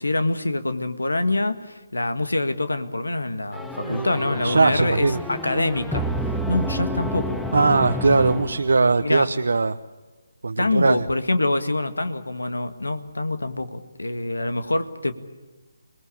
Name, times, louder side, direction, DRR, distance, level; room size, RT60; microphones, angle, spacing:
voice 1, 0.0-6.1 6.5-7.4 9.0-9.3 10.6-15.1, left 2 dB, 90° left, 11 dB, 1.7 m, -25 dB
sound 1, 3.5-9.1, equal, ahead, 1.1 m, -30 dB
voice 2, 4.4-5.2 7.5-9.8 10.4-11.0, right 3 dB, 70° right, 8 dB, 0.9 m, -20 dB
25.5 x 19.5 x 8.4 m, 1.2 s
figure-of-eight pair, 150°, 0 cm